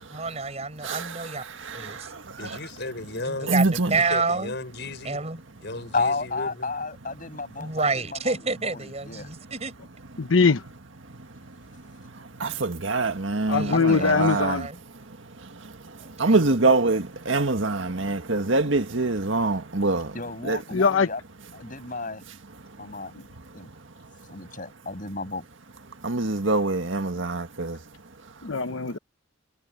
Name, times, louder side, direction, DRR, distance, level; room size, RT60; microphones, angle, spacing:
voice 1, 0.1-1.4 1.7-2.1 2.4-2.6 3.3-4.6 5.0-5.4 7.6-9.7 13.5-14.8 16.0-16.6, right 4 dB, 35° right, 5.6 m, -29 dB
voice 2, 2.4-3.6 3.9-5.2 5.6-6.7, left 2 dB, 55° left, 6.9 m, -35 dB
voice 3, 3.5-3.9 12.4-14.6 16.2-20.1 20.4-20.6 26.0-27.8, right 3 dB, 70° right, 1.8 m, -24 dB
voice 4, 5.9-9.3 13.7-14.3 20.1-21.2 21.5-22.2 22.8-23.1 23.5-23.7 24.3-25.4, left 3 dB, 40° left, 7.4 m, -32 dB
voice 5, 10.2-10.6 13.5-14.7 20.7-21.1 28.4-29.0, left 4 dB, 85° left, 1.0 m, -21 dB
head